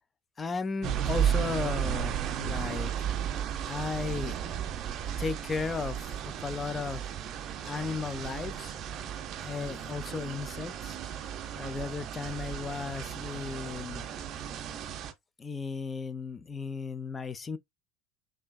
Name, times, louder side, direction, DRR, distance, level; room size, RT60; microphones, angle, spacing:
voice 1, 0.4-3.1 3.7-4.3 5.2-7.1 7.6-8.7 9.4-11.2 11.6-14.1 15.4-17.6, left 4 dB, 25° left, 0.4 m, -35 dB
sound 1, 0.8-15.1, right 9 dB, 45° right, 0.5 m, -34 dB
4.4 x 2.6 x 2.2 m
figure-of-eight pair, 70°, 0 cm